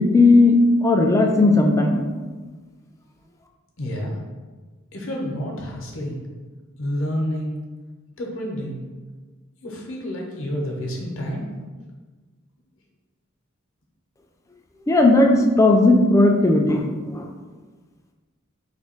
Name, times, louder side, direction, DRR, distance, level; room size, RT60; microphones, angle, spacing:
voice 1, 0.0-2.0 14.9-16.8 17.1-17.3, left 2 dB, 15° left, 2 dB, 0.4 m, -16 dB
voice 2, 3.8-4.1 4.9-6.2 6.8-7.6 8.2-8.8 9.6-11.5, equal, 70° left, -1 dB, 0.8 m, -29 dB
3.4 x 2.6 x 4.3 m, 1.3 s
head